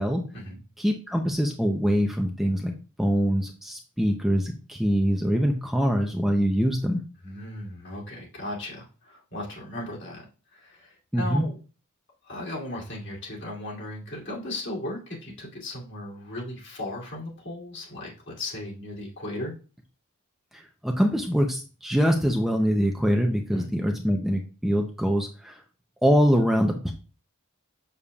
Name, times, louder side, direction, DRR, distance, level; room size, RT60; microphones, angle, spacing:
voice 1, 0.8-2.7 3.0-7.0 11.1-11.5 20.5-25.6 26.0-26.9, equal, ahead, 2 dB, 0.6 m, -24 dB
voice 2, 7.2-10.2 10.5-11.5 12.2-19.5 23.5-23.7, left 1 dB, 55° left, -2 dB, 2.8 m, -36 dB
7.0 x 6.8 x 2.4 m, 0.35 s
head